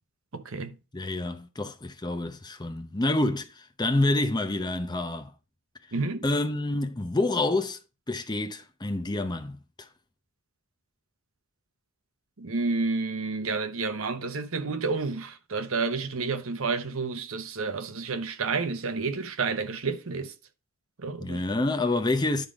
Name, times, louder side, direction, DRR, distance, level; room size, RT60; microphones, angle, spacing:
voice 1, 0.3-0.8 5.9-6.3 12.4-20.3 21.0-21.4, right 4 dB, 65° right, 0.8 m, -30 dB
voice 2, 0.9-5.3 6.2-7.8 8.1-9.9 21.2-22.5, left 2 dB, 20° left, 0.7 m, -28 dB
10.5 x 3.8 x 4.8 m
head